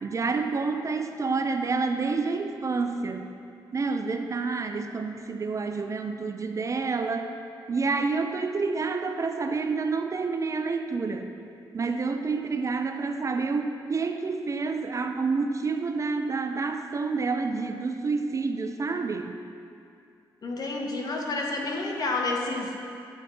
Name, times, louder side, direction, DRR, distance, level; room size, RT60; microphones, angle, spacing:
voice 1, 0.0-3.3 3.7-7.3 7.7-11.3 11.7-19.4, right 4 dB, 40° right, 6 dB, 0.4 m, -28 dB
voice 2, 20.4-22.7, left 2 dB, 50° left, 0 dB, 1.0 m, -29 dB
8.6 x 3.7 x 3.8 m, 2.4 s
cardioid pair, 65°, 9 cm